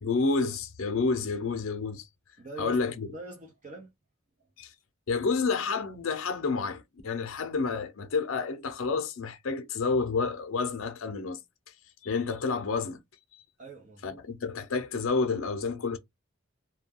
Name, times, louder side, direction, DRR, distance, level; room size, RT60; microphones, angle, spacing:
voice 1, 0.0-2.1 2.6-3.1 4.6-4.7 5.1-11.4 12.0-13.0 13.3-13.4 14.0-16.0, left 4 dB, 75° left, 0.5 m, -29 dB
voice 2, 2.4-3.9 13.6-14.2, right 2 dB, 40° right, 0.6 m, -44 dB
2.2 x 2.1 x 3.4 m
head